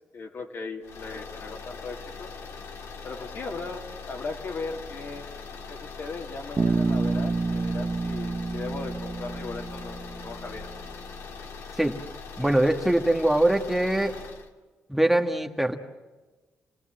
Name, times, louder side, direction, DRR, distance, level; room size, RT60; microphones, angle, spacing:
voice 1, 0.1-2.3 3.0-5.3 5.7-10.7, left 3 dB, 55° left, 2 dB, 2.7 m, -38 dB
sound 1, 0.8-14.5, left 5 dB, 75° left, 2.1 m, -41 dB
Bass guitar, 6.6-10.6, right 3 dB, 30° right, 0.9 m, -28 dB
voice 2, 12.4-14.2 14.9-15.8, right 1 dB, 5° right, 4 dB, 1.6 m, -22 dB
29.0 x 18.0 x 7.6 m, 1.2 s
cardioid pair, 85°, 5 cm